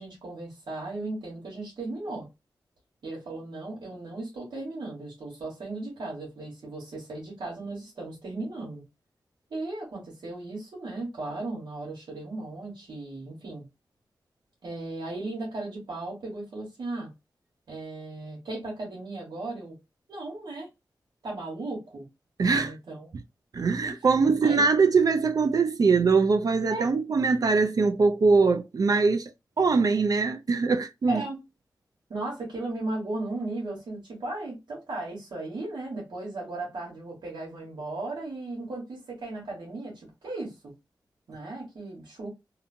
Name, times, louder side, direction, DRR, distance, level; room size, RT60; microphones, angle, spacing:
voice 1, 0.0-2.2 3.0-8.8 9.5-13.6 14.6-17.1 17.7-19.8 20.1-20.7 21.2-22.0 22.4-23.1 23.8-24.6 26.7-26.9 31.1-31.4 32.1-40.5 41.3-42.3, right 2 dB, 85° right, 1.4 m, -36 dB
voice 2, 22.4-22.7 23.5-29.3 29.6-31.2, right 4 dB, 55° right, 0.4 m, -22 dB
2.7 x 2.5 x 2.6 m
cardioid pair, 60°, 8 cm